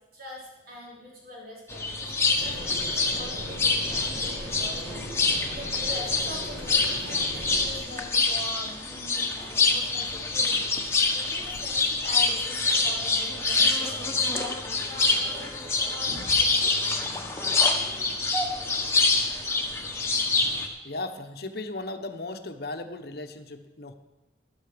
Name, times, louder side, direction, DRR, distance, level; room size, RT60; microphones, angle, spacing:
voice 1, 0.1-14.5 14.8-16.7, left 1 dB, 50° right, -5 dB, 4.8 m, -43 dB
sound 1, 1.7-20.7, left 3 dB, 15° left, 1.2 m, -26 dB
sound 2, 2.4-7.8, equal, 75° right, 2.2 m, -39 dB
voice 2, 20.8-23.9, left 2 dB, 55° left, 7 dB, 1.0 m, -36 dB
13.0 x 12.0 x 5.1 m, 1.1 s
head